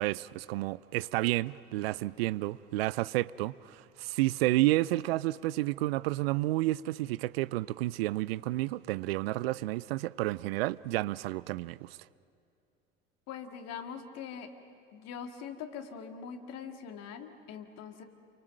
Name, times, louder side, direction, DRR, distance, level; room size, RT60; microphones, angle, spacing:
voice 1, 0.0-12.0, right 18 dB, 70° right, 0.5 m, -30 dB
voice 2, 13.3-14.5 14.9-18.0, left 7 dB, 55° left, 2.1 m, -42 dB
28.5 x 24.0 x 6.5 m
figure-of-eight pair, 65°, 31 cm